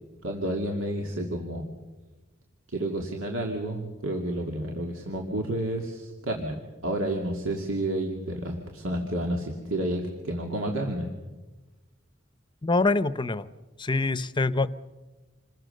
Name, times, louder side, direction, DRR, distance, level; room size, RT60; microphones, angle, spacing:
voice 1, 0.2-1.7 2.7-11.1, right 1 dB, 85° right, 1 dB, 2.6 m, -30 dB
voice 2, 12.6-13.5 13.8-14.7, left 3 dB, 25° left, 15 dB, 0.7 m, -25 dB
28.0 x 21.5 x 6.7 m, 1.2 s
head